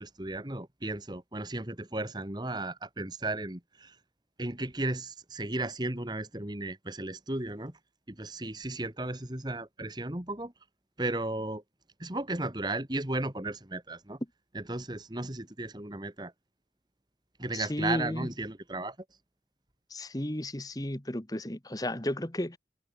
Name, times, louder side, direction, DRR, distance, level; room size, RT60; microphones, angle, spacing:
voice 1, 0.0-4.0 4.4-7.8 8.1-10.5 11.0-11.6 12.0-14.2 14.5-16.3 17.4-19.0, right 2 dB, 25° right, 1.8 m, -35 dB
voice 2, 17.5-18.3 19.9-22.6, left 1 dB, 20° left, 1.4 m, -33 dB
head